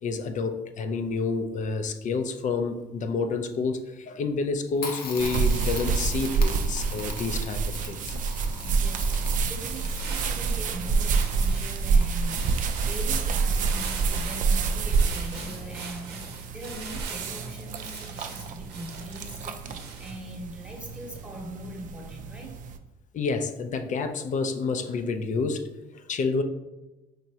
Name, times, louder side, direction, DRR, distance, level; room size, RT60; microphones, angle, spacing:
voice 1, 0.0-8.2 23.1-26.4, left 4 dB, 50° left, 8 dB, 0.5 m, -29 dB
Crackle, 4.8-16.3, left 4 dB, 65° left, 0.9 m, -43 dB
sound 1, 5.2-22.8, right 5 dB, 55° right, 0.4 m, -28 dB
voice 2, 8.6-22.5, equal, 5° right, -1 dB, 1.0 m, -41 dB
sound 2, 9.5-20.4, right 5 dB, 85° right, 0.7 m, -42 dB
4.7 x 3.0 x 2.8 m, 1.0 s
cardioid pair, 90°, 17 cm